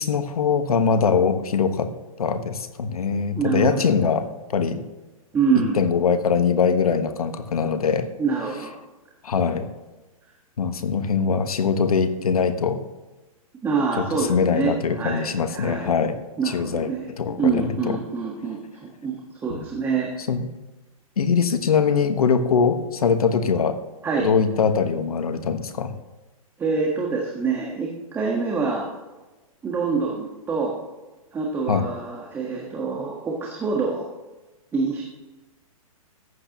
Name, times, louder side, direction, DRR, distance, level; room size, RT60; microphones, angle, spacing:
voice 1, 0.0-1.9 2.2-4.8 5.7-8.1 9.2-9.7 10.6-12.8 14.0-16.2 16.4-16.9 17.2-18.0 19.5-19.6 20.3-20.5 21.2-23.8 24.2-25.9 31.7-31.9, left 6 dB, 90° left, 9 dB, 1.3 m, -22 dB
voice 2, 3.3-3.8 5.3-5.8 8.2-8.7 13.6-15.9 16.4-17.1 17.4-19.2 19.4-20.1 24.0-24.3 26.6-28.9 29.6-30.8 31.3-34.0 34.7-35.0, right 5 dB, 10° right, -1 dB, 1.4 m, -25 dB
14.5 x 10.5 x 3.0 m, 1.1 s
hypercardioid pair, 150°, 18 cm